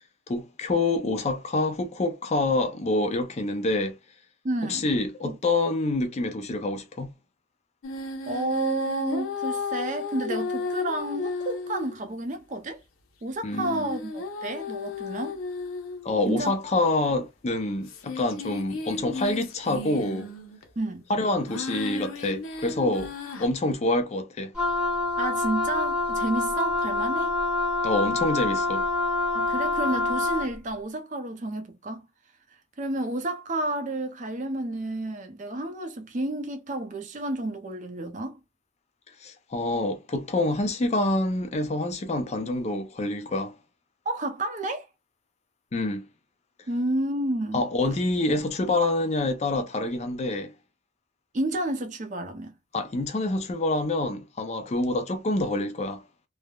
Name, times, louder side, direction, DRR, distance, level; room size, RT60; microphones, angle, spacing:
voice 1, 0.3-4.0 4.7-7.1 13.4-14.0 16.0-20.3 21.1-23.1 23.4-24.5 27.8-28.9 39.2-43.5 45.7-46.0 47.5-50.5 52.7-56.0, left 2 dB, 30° left, 0.4 m, -27 dB
voice 2, 4.4-4.9 5.2-5.4 8.3-12.8 13.2-15.4 16.3-16.6 20.8-21.0 25.2-27.3 29.3-32.0 32.8-38.4 44.1-44.9 46.7-47.7 51.3-52.5, right 1 dB, 35° right, 0.5 m, -30 dB
sound 1, 7.8-12.0 13.5-16.2 17.0-17.1 17.9-20.6 21.5-23.5, left 3 dB, 85° left, 0.7 m, -34 dB
Wind instrument woodwind instrument, 24.5-30.5, left 3 dB, 5° right, 0.9 m, -26 dB
3.2 x 2.0 x 2.2 m
head